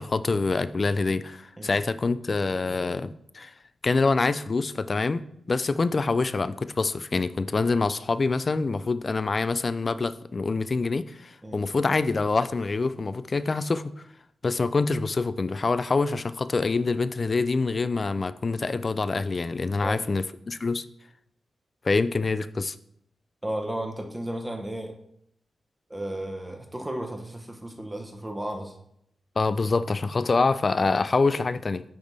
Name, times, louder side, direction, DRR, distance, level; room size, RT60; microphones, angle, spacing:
voice 1, 0.0-3.5 3.8-5.2 5.5-13.9 14.4-20.8 21.8-22.8 29.4-31.8, left 3 dB, 40° left, 14 dB, 0.3 m, -25 dB
voice 2, 23.4-25.0 25.9-28.7, right 1 dB, 15° right, 4 dB, 0.9 m, -34 dB
10.5 x 3.5 x 4.0 m, 0.74 s
cardioid pair, 90°, 0 cm